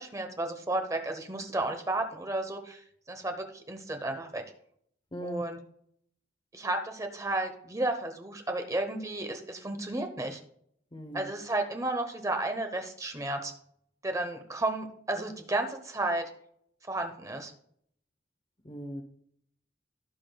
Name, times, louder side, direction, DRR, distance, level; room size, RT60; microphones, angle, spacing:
voice 1, 0.0-2.8 3.1-4.4 5.2-5.6 6.5-10.4 11.1-13.5 14.0-16.3 16.8-17.5, right 2 dB, 15° right, 1.0 m, -32 dB
voice 2, 5.1-5.4 10.9-11.3 18.6-19.0, right 1 dB, 25° left, 1.0 m, -38 dB
17.0 x 6.0 x 2.3 m
head